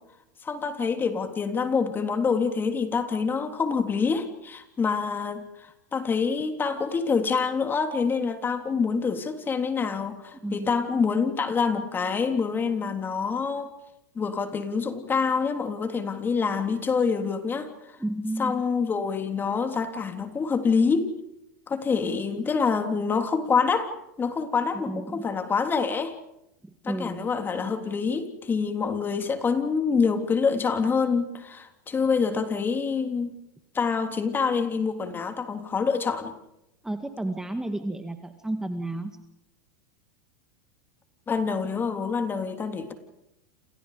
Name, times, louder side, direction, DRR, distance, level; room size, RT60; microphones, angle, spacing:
voice 1, 0.4-13.7 14.2-17.7 18.4-21.1 21.7-23.9 24.2-26.2 26.8-33.3 33.7-36.3 41.3-42.9, left 5 dB, 20° left, 7 dB, 3.4 m, -26 dB
voice 2, 18.0-18.6 24.7-25.3 26.6-27.2 36.8-39.1, right 1 dB, 5° right, 7 dB, 2.0 m, -32 dB
29.0 x 28.5 x 5.2 m, 0.85 s
hypercardioid pair, 110°, 10 cm